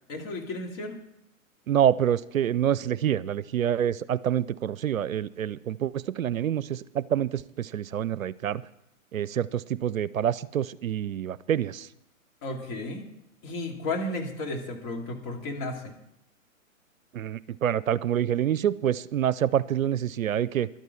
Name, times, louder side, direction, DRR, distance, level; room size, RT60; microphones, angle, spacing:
voice 1, 0.1-1.0 12.4-13.0 13.4-15.9, left 2 dB, 30° left, 2 dB, 2.3 m, -33 dB
voice 2, 1.7-8.6 9.1-11.9 17.1-20.7, right 10 dB, 75° right, 19 dB, 0.6 m, -27 dB
12.0 x 9.2 x 7.0 m, 0.83 s
figure-of-eight pair, 125°, 41 cm